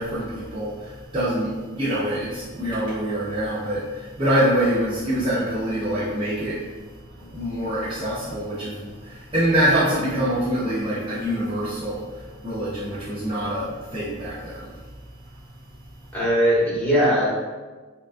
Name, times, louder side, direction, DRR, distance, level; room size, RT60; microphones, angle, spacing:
voice 1, 0.0-6.6 7.2-12.0 12.4-14.7, right 1 dB, 25° right, -10 dB, 0.5 m, -25 dB
voice 2, 16.1-17.3, equal, 5° left, -8 dB, 0.9 m, -19 dB
3.5 x 2.3 x 2.4 m, 1.3 s
head